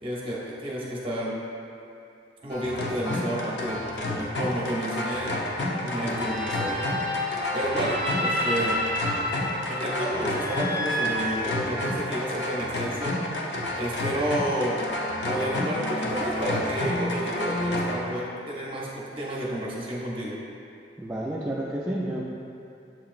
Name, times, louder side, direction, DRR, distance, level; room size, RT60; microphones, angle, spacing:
voice 1, 0.0-1.4 2.4-5.4 5.8-6.8 7.5-8.9 9.7-13.1 13.8-14.9 15.2-20.4, equal, 30° right, -5 dB, 0.7 m, -30 dB
sound 1, 2.5-18.0, left 1 dB, 80° left, 0.6 m, -30 dB
sound 2, 6.1-12.1, equal, 30° left, 0.9 m, -31 dB
voice 2, 21.0-22.2, right 1 dB, 10° right, -8 dB, 0.3 m, -30 dB
7.4 x 2.9 x 2.4 m, 2.7 s
head